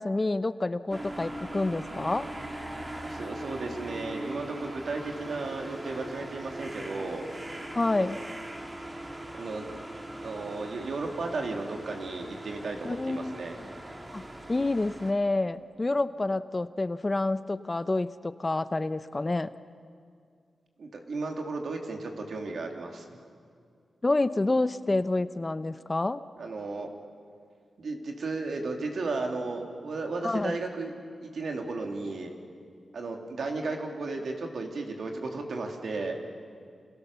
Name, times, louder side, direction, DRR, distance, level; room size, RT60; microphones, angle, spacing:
voice 1, 0.0-2.3 7.7-8.2 12.8-13.4 14.1-19.5 24.0-26.2 30.2-30.6, left 2 dB, 30° left, 13 dB, 0.8 m, -28 dB
sound 1, 0.9-15.1, right 1 dB, 25° right, 3.4 m, -40 dB
voice 2, 3.0-7.2 8.0-8.2 9.3-9.8 10.2-13.5 20.8-23.0 26.4-26.9 27.8-30.9 31.2-32.3 32.9-36.2, right 3 dB, 70° right, 2 dB, 3.4 m, -34 dB
29.5 x 27.0 x 7.0 m, 2.2 s
cardioid pair, 75°, 0 cm